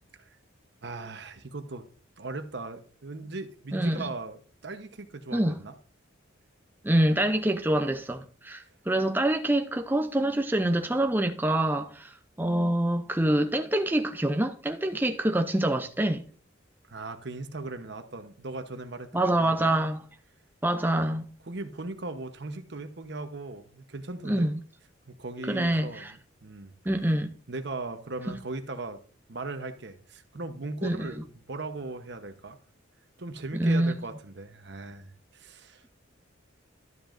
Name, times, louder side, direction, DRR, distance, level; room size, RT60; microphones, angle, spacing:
voice 1, 0.8-1.8 2.2-5.7 16.9-19.7 21.5-24.5 25.1-26.7 27.5-29.0 29.3-32.6 33.2-35.9, right 2 dB, 55° right, 1.0 m, -38 dB
voice 2, 3.7-4.1 5.3-5.6 6.8-16.2 19.1-20.0 20.6-21.3 24.2-24.6 25.5-26.1 26.9-27.3 28.3-28.4 30.8-31.1 33.5-33.9, right 1 dB, 10° right, 0.5 m, -26 dB
12.5 x 7.3 x 2.6 m
head